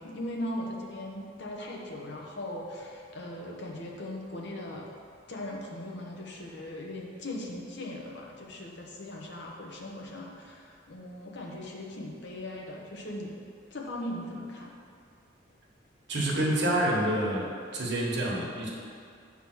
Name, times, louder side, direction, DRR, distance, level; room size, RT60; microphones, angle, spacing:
voice 1, 0.0-4.9 5.3-13.3 13.7-14.7, left 1 dB, 60° left, -1 dB, 1.0 m, -39 dB
voice 2, 16.1-17.5 17.7-18.7, right 1 dB, 60° right, -4 dB, 1.5 m, -27 dB
8.0 x 3.5 x 6.2 m, 2.3 s
head